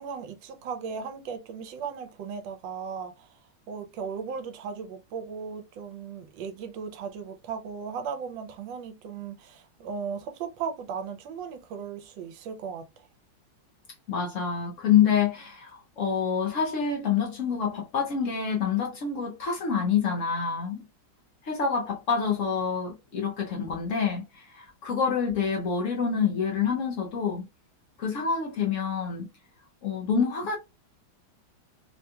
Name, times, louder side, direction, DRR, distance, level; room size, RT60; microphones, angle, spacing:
voice 1, 0.0-3.4 3.7-13.1, right 6 dB, 75° right, 1.3 m, -37 dB
voice 2, 14.1-20.8 21.4-27.5 28.0-29.3 29.8-30.6, left 6 dB, 90° left, 0.6 m, -27 dB
3.5 x 2.8 x 2.2 m
omnidirectional pair, 2.2 m